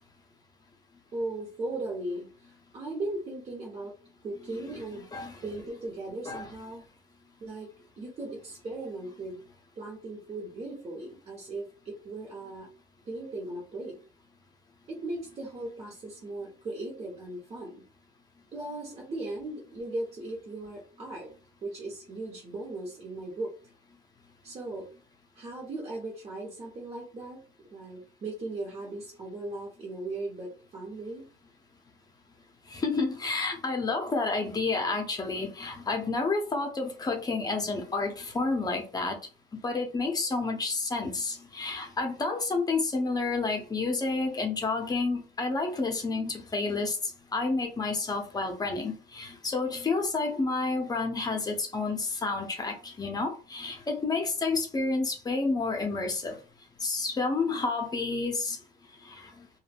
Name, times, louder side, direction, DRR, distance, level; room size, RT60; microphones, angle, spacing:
voice 1, 1.1-3.9 4.2-5.1 5.4-6.8 7.4-7.7 8.0-9.4 9.8-12.7 13.0-14.0 14.9-17.8 18.5-21.3 21.6-23.5 24.4-24.9 25.3-27.4 27.7-31.2, right 2 dB, 40° right, -3 dB, 1.0 m, -37 dB
voice 2, 32.7-39.2 39.5-47.0 47.3-56.3 56.8-58.6 59.0-59.3, left 3 dB, 25° left, 3 dB, 0.7 m, -30 dB
2.3 x 2.0 x 3.4 m, 0.36 s
cardioid pair, 110°, 17 cm